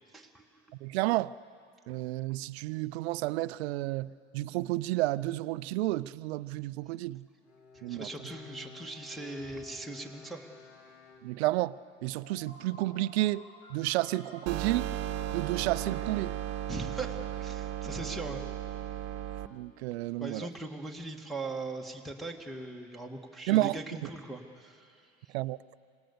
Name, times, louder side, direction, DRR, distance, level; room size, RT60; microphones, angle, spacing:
voice 1, 0.1-0.4 7.9-10.5 16.7-18.4 20.2-25.3, right 2 dB, ahead, -1 dB, 1.8 m, -40 dB
voice 2, 0.8-1.3 1.9-7.3 7.8-8.1 11.2-13.4 13.7-14.9 15.3-16.4 19.5-20.5 23.5-23.8 25.3-25.6, right 17 dB, 70° right, 17 dB, 0.5 m, -31 dB
Bowed string instrument, 7.4-11.8, left 5 dB, 80° left, 2.3 m, -52 dB
sound 1, 12.2-18.1, left 2 dB, 50° left, 6.9 m, -54 dB
sound 2, 14.5-19.5, right 12 dB, 50° right, 1.1 m, -35 dB
26.5 x 18.0 x 6.8 m, 2.4 s
hypercardioid pair, 75°, 33 cm